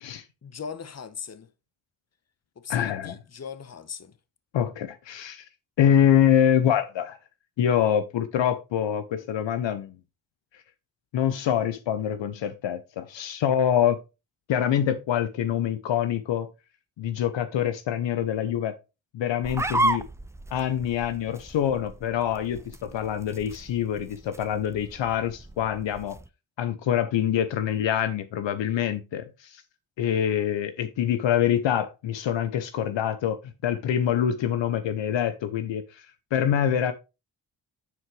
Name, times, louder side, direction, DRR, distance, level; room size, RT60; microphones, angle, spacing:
voice 1, 0.4-1.5 2.6-4.2, left 6 dB, 35° left, 1.0 m, -39 dB
voice 2, 2.7-3.1 4.5-5.5 5.8-7.2 7.6-9.9 11.1-14.0 14.5-16.5 17.0-18.7 19.1-20.0 20.5-26.2 26.6-29.6 30.0-33.4 33.6-35.8 36.3-36.9, left 9 dB, 65° left, 0.8 m, -25 dB
sound 1, 19.4-26.3, right 2 dB, 5° right, 0.5 m, -33 dB
9.6 x 4.5 x 3.2 m
supercardioid pair, 40°, 47 cm